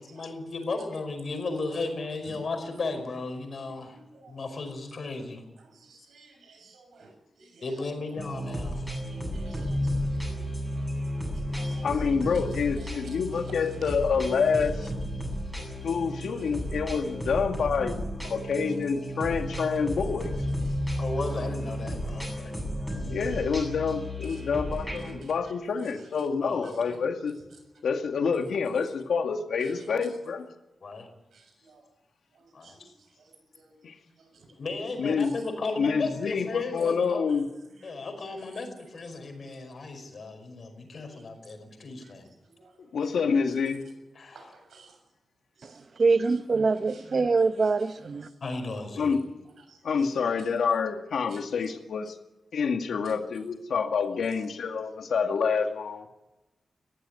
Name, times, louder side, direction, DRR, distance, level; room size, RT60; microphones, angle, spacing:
voice 1, 0.0-4.0 4.3-5.4 7.6-8.8 9.4-9.5 21.0-22.5 26.4-27.0 30.8-31.1 32.5-32.9 34.6-37.3 37.8-42.3 44.2-44.5 48.4-49.1, left 3 dB, 50° left, 5 dB, 5.3 m, -35 dB
voice 2, 3.9-4.3 5.6-7.8 9.1-10.5 11.3-12.4 12.8-13.9 14.5-14.7 16.4-16.6 20.7-20.8 21.2-21.3 23.3-23.5 24.2-25.5 26.0-26.3 26.6-26.8 27.7-27.8 29.6-30.1 31.3-31.9 32.3-33.8 34.2-34.6 35.2-35.3 37.7-37.9 38.2-38.4 41.1-41.2 42.0-42.1 42.5-43.1 44.3-45.0 45.6-46.4 46.9-47.0 47.6-47.9 48.4-48.6 48.9-49.0 49.6-50.4 51.3-51.4 53.0-53.1 54.3-54.4, right 3 dB, 85° right, 5 dB, 6.7 m, -54 dB
sound 1, 8.2-25.1, equal, ahead, 7.9 m, -33 dB
voice 3, 11.8-14.9 15.8-20.3 23.1-27.3 27.8-30.5 33.8-33.9 35.0-35.4 35.8-37.5 42.9-43.8 49.0-49.2 49.8-52.1 52.5-56.1, left 5 dB, 90° left, 5 dB, 2.2 m, -27 dB
voice 4, 46.0-48.3, right 4 dB, 40° right, 10 dB, 1.0 m, -24 dB
21.0 x 15.0 x 9.8 m, 1.0 s
wide cardioid pair, 165°, 0 cm